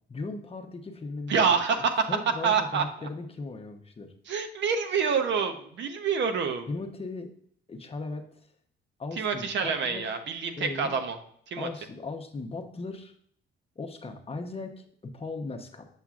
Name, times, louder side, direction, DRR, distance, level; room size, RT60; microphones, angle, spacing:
voice 1, 0.1-1.5 2.1-4.1 6.7-7.3 7.7-8.3 9.0-10.1 10.6-11.0 11.6-13.1 13.8-15.9, left 3 dB, 30° left, 5 dB, 0.9 m, -37 dB
voice 2, 1.3-2.1 2.4-2.8 4.3-6.7 9.2-11.2 11.5-11.7, right 6 dB, 70° right, 6 dB, 0.9 m, -27 dB
7.3 x 5.7 x 2.4 m, 0.63 s
cardioid pair, 90°, 20 cm